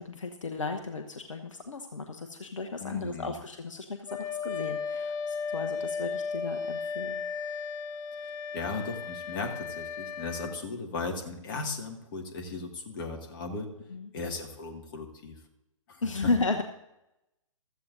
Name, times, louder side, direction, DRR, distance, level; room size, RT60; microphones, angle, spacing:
voice 1, 0.0-7.2 13.9-14.1 16.0-16.6, left 3 dB, 65° left, 6 dB, 1.1 m, -34 dB
voice 2, 2.8-3.3 8.5-13.7 14.1-15.4 15.9-16.0, left 3 dB, 35° left, 3 dB, 2.0 m, -37 dB
Wind instrument woodwind instrument, 4.1-10.6, left 5 dB, 20° left, 0.6 m, -35 dB
15.5 x 13.5 x 2.6 m, 0.89 s
figure-of-eight pair, 130°, 18 cm